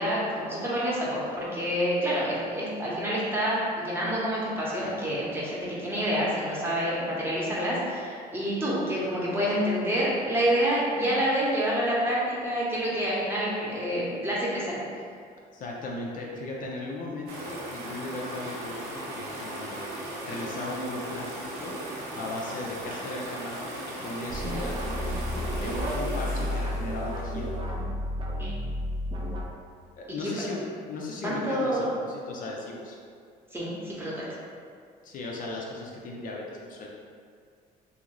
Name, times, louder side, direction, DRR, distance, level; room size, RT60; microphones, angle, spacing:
voice 1, 0.0-14.7 24.4-24.6 28.4-28.5 30.2-30.3 31.2-31.9 33.5-34.2, equal, 15° right, -7 dB, 0.8 m, -28 dB
voice 2, 15.5-19.9 20.2-21.8 22.2-23.7 24.0-25.2 25.6-27.5 30.0-33.0 35.0-36.9, left 2 dB, 55° left, -2 dB, 0.4 m, -37 dB
sound 1, 17.3-27.7, right 1 dB, 80° right, 0.7 m, -37 dB
sound 2, 24.3-29.4, equal, 30° right, 0.4 m, -31 dB
2.7 x 2.5 x 3.0 m, 2.2 s
cardioid pair, 110°, 17 cm